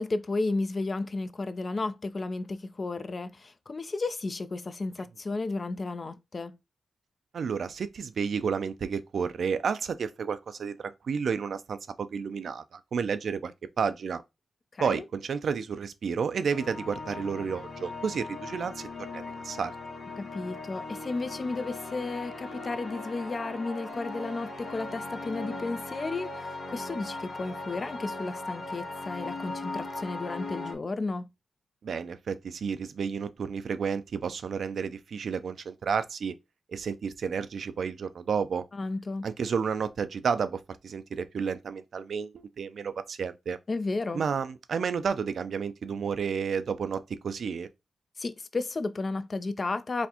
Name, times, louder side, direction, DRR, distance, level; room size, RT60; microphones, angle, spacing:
voice 1, 0.0-6.6 14.7-15.1 20.2-31.2 38.7-39.3 43.7-44.2 48.2-50.1, left 3 dB, 40° left, 0.4 m, -33 dB
voice 2, 7.3-13.5 13.8-14.2 14.8-19.7 31.8-36.3 36.7-38.6 39.2-43.6 44.1-47.7, right 6 dB, 70° right, 0.4 m, -31 dB
sound 1, 16.5-30.7, left 2 dB, 75° left, 1.2 m, -39 dB
4.1 x 2.5 x 2.8 m
cardioid pair, 70°, 0 cm